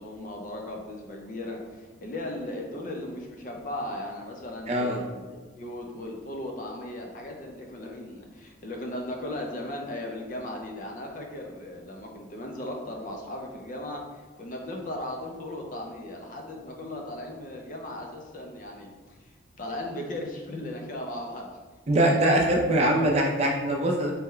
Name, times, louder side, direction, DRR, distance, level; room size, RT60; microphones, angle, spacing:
voice 1, 0.0-19.3 19.6-21.5 22.0-22.3, left 1 dB, 40° left, 1 dB, 0.5 m, -37 dB
voice 2, 4.7-5.0 21.9-24.1, right 1 dB, 35° right, 0 dB, 0.4 m, -22 dB
4.1 x 2.2 x 3.7 m, 1.4 s
head